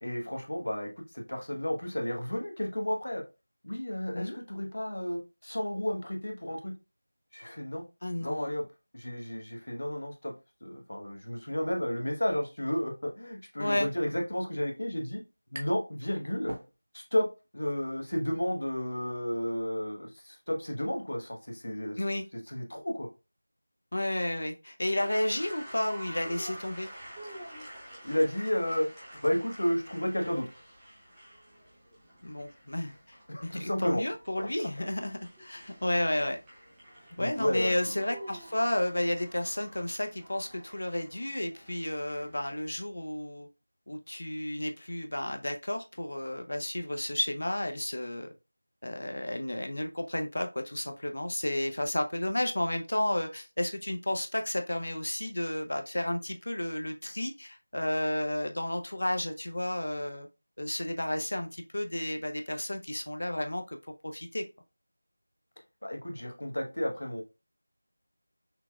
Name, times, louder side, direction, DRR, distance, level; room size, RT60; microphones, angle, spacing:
voice 1, 0.0-3.2 3.6-6.7 7.3-7.8 8.2-8.6 8.9-10.3 10.6-15.2 15.5-16.5 16.9-17.3 17.5-22.0 22.5-23.1 28.0-28.9 29.2-30.5 33.3-34.0 37.2-37.8 65.8-67.2, left 1 dB, 75° left, 2 dB, 1.0 m, -32 dB
voice 2, 8.0-8.5 13.6-13.9 22.0-22.2 23.9-26.9 32.2-36.4 37.2-43.5 43.9-48.3 48.8-60.3 60.6-63.8 64.0-64.4, left 1 dB, 60° left, 6 dB, 0.5 m, -32 dB
sound 1, 15.2-15.9 16.3-17.2, right 1 dB, 40° right, 0.9 m, -43 dB
sound 2, 25.0-42.4, right 1 dB, 5° right, 0.7 m, -49 dB
5.7 x 2.2 x 2.3 m, 0.27 s
figure-of-eight pair, 175°, 0 cm